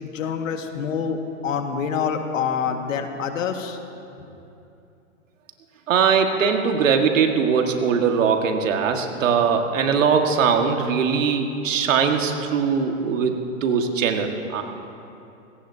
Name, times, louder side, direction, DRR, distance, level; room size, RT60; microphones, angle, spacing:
voice 1, 0.0-3.8, left 6 dB, 75° left, 5 dB, 1.8 m, -26 dB
voice 2, 5.9-14.6, right 6 dB, 70° right, 4 dB, 1.8 m, -21 dB
27.5 x 18.0 x 2.8 m, 2.8 s
hypercardioid pair, 140°, 40 cm